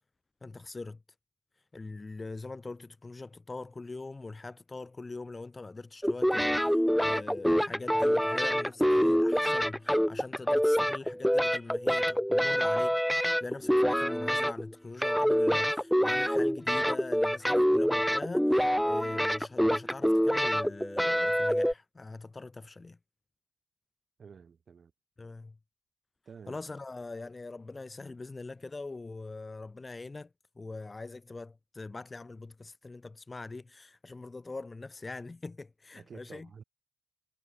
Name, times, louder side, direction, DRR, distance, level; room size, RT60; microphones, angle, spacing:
voice 1, 0.4-1.0 1.7-23.0 25.2-25.6 26.5-30.3 30.6-36.5, left 3 dB, 20° left, 0.8 m, -42 dB
sound 1, 6.0-14.7 15.0-21.7, equal, ahead, 0.4 m, -26 dB
voice 2, 24.2-24.9 26.3-26.7 35.9-36.6, right 6 dB, 45° right, 7.7 m, -50 dB
cardioid pair, 90°, 0 cm